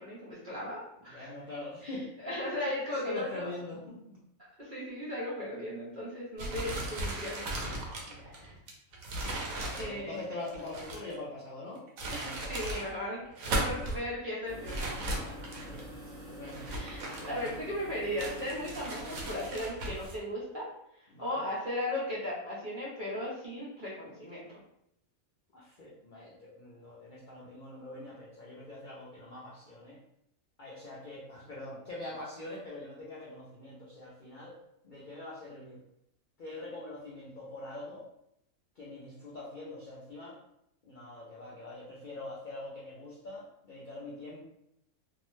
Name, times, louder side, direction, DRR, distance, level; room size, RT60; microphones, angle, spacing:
voice 1, 0.0-1.3 1.8-3.6 4.6-7.7 8.1-8.5 9.8-10.2 12.1-15.1 16.7-20.7 21.2-24.5, left 1 dB, 45° right, -7 dB, 0.7 m, -37 dB
voice 2, 1.1-2.1 3.0-4.2 8.0-8.3 9.4-12.6 13.5-13.9 15.1-15.9 16.3-16.7 17.2-17.4 21.1-21.5 25.5-30.0 30.6-34.6 34.8-35.8 36.4-38.1 38.8-40.4 40.8-44.5, left 2 dB, 60° left, -6 dB, 0.5 m, -44 dB
sound 1, 6.4-11.1 11.8-12.9 13.3-14.0 14.6-15.8 16.5-17.8 18.2-20.2, right 1 dB, 75° right, 1.0 m, -37 dB
sound 2, 14.5-19.5, equal, 10° right, 0.7 m, -46 dB
2.7 x 2.1 x 3.0 m, 0.77 s
omnidirectional pair, 1.5 m